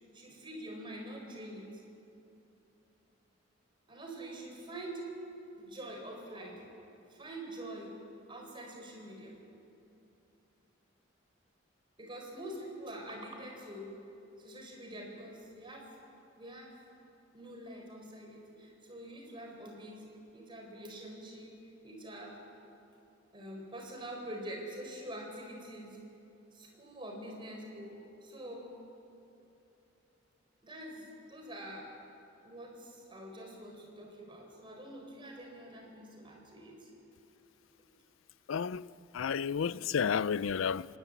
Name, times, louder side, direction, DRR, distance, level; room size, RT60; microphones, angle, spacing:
voice 1, 0.1-1.8 3.9-5.1 5.6-6.7 7.1-8.0 8.3-9.4 12.0-14.0 14.4-15.9 16.4-16.7 17.3-20.1 20.3-22.4 23.3-26.0 26.5-28.8 30.6-31.9 32.4-36.9, right 1 dB, 25° right, 4.2 m, -45 dB
voice 2, 38.5-38.9 39.1-40.9, left 7 dB, 80° left, 0.4 m, -31 dB
26.0 x 11.5 x 9.2 m
head